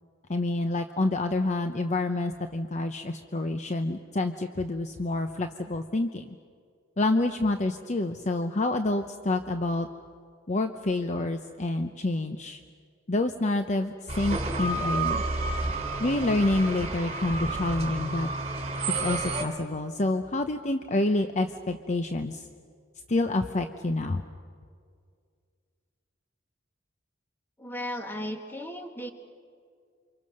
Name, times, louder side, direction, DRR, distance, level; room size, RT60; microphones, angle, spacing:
voice 1, 0.3-6.4 7.0-9.9 10.5-12.6 13.1-15.2 16.0-18.3 19.0-22.5 23.1-24.2, left 2 dB, 35° left, 7 dB, 0.8 m, -28 dB
sound 1, 14.1-19.4, right 2 dB, 35° right, 3.3 m, -30 dB
voice 2, 27.6-29.1, equal, 10° left, 4 dB, 2.1 m, -35 dB
29.0 x 25.5 x 6.5 m, 2.1 s
head